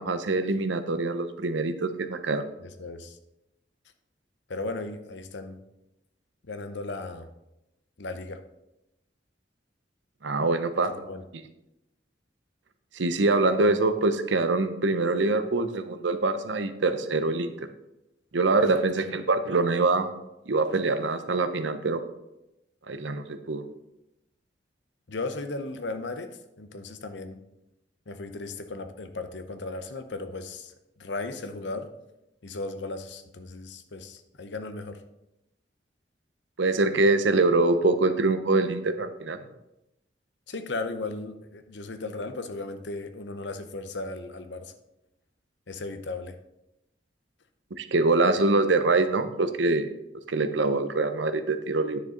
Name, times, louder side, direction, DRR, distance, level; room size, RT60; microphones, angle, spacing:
voice 1, 0.0-2.4 10.2-10.9 12.9-17.5 18.3-20.1 20.5-22.0 22.9-23.6 36.6-39.4 47.8-49.9 50.3-52.0, right 3 dB, 90° right, 10 dB, 0.7 m, -24 dB
voice 2, 2.6-3.2 4.5-5.6 6.4-7.3 8.0-8.4 11.0-11.2 18.9-19.0 25.1-27.4 28.1-31.9 32.4-35.0 40.5-44.7 45.7-46.4, left 3 dB, 75° left, 9 dB, 0.8 m, -36 dB
9.7 x 6.7 x 3.8 m, 0.91 s
head